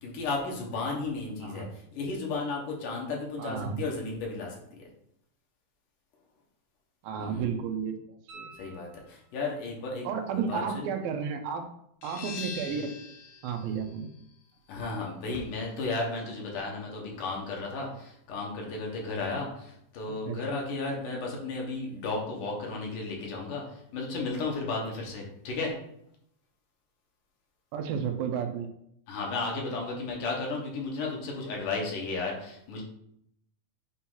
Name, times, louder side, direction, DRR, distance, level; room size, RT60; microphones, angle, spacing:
voice 1, 0.0-4.9 7.2-7.6 8.6-10.9 12.6-12.8 14.7-25.7 29.1-32.8, left 3 dB, 65° left, -1 dB, 2.8 m, -34 dB
voice 2, 3.4-3.8 7.0-8.0 8.3-8.5 10.0-11.7 12.0-12.8 13.4-14.1 20.1-20.4 27.7-28.7, right 6 dB, 80° right, 6 dB, 2.5 m, -32 dB
sound 1, 8.3-9.6 12.4-12.5, right 4 dB, 60° right, 2.6 m, -50 dB
sound 2, 12.0-17.4, left 6 dB, 85° left, 2.8 m, -46 dB
8.5 x 2.9 x 5.6 m, 0.73 s
omnidirectional pair, 4.1 m